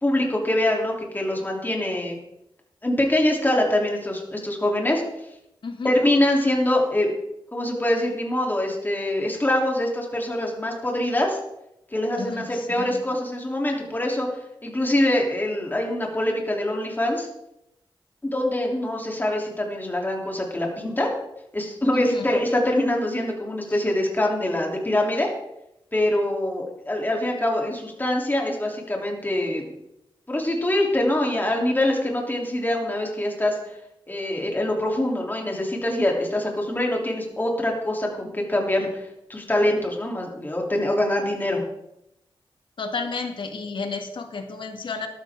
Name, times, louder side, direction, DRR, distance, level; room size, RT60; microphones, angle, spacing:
voice 1, 0.0-2.2 2.8-5.0 5.8-7.1 7.5-11.4 11.9-14.3 14.6-17.3 18.2-21.1 21.5-25.3 25.9-29.6 30.3-33.6 34.1-39.0 39.3-41.6, left 1 dB, 20° left, 0 dB, 3.2 m, -24 dB
voice 2, 12.2-13.0 21.9-22.2 42.8-45.1, left 4 dB, 70° left, 5 dB, 1.7 m, -32 dB
13.0 x 12.5 x 3.7 m, 0.86 s
wide cardioid pair, 75°, 9 cm